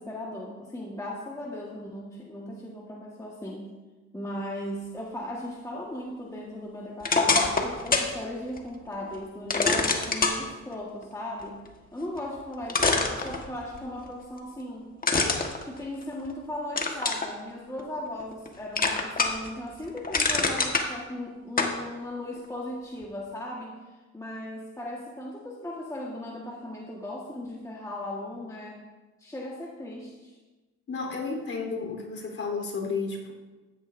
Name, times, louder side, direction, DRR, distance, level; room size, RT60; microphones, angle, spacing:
voice 1, 0.0-3.8 4.1-14.9 15.6-23.8 24.1-28.8 29.2-30.4, left 1 dB, 10° left, -3 dB, 1.6 m, -37 dB
sound 1, 7.0-8.1 8.6-8.7 9.5-10.4 12.2-12.3 12.7-13.8 15.0-16.3 16.8-17.3 17.8-18.5 18.8-19.5 19.8-20.9 21.6-21.8, left 3 dB, 30° left, 1.5 m, -24 dB
voice 2, 30.9-33.3, left 4 dB, 45° left, -1 dB, 3.8 m, -32 dB
14.5 x 10.5 x 2.7 m, 1.2 s
cardioid pair, 90°, 30 cm